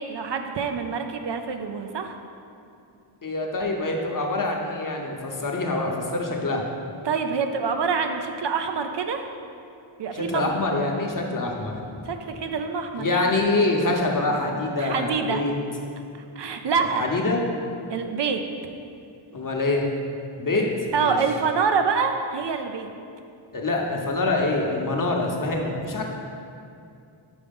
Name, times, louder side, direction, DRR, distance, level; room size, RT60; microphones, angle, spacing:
voice 1, 0.0-2.2 7.0-9.2 10.0-10.5 12.1-13.3 14.8-15.4 16.4-17.1 17.9-18.4 20.9-22.9, right 5 dB, 60° right, 6 dB, 0.5 m, -26 dB
voice 2, 3.2-6.6 10.1-12.0 13.0-15.5 17.0-17.4 19.3-19.9 20.4-20.7 20.9-21.2 23.5-26.0, left 2 dB, 40° left, 1 dB, 0.8 m, -25 dB
5.2 x 4.7 x 5.2 m, 2.5 s
wide cardioid pair, 85°, 49 cm